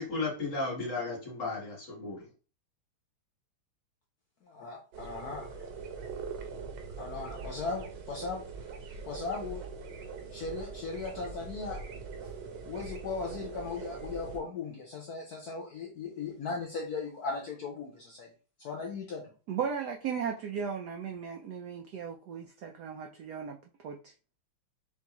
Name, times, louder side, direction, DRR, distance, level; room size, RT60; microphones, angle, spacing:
voice 1, 0.0-2.2, left 3 dB, 40° left, -1 dB, 1.6 m, -34 dB
voice 2, 4.4-5.7 7.0-8.4 9.0-9.6 10.3-11.8 12.2-12.3 12.6-18.3 18.6-19.2, left 4 dB, 65° left, 0 dB, 1.0 m, -38 dB
sound 1, 4.9-14.4, right 4 dB, 65° right, 1.3 m, -42 dB
voice 3, 19.5-23.6 23.8-24.0, right 7 dB, 85° right, 3 dB, 0.8 m, -36 dB
4.5 x 3.5 x 3.0 m, 0.36 s
omnidirectional pair, 2.3 m